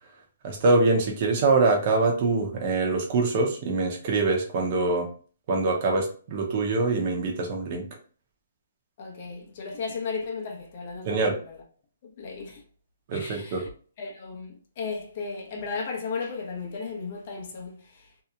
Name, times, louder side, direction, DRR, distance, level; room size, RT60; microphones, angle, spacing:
voice 1, 0.4-5.1 5.5-7.9 11.0-11.3 13.1-13.6, right 3 dB, 40° right, 0.6 m, -24 dB
voice 2, 9.0-11.4 12.2-12.6 13.1-13.6 14.0-17.8, left 4 dB, 45° left, 0.7 m, -35 dB
2.8 x 2.0 x 2.4 m
hypercardioid pair, 155°, 0 cm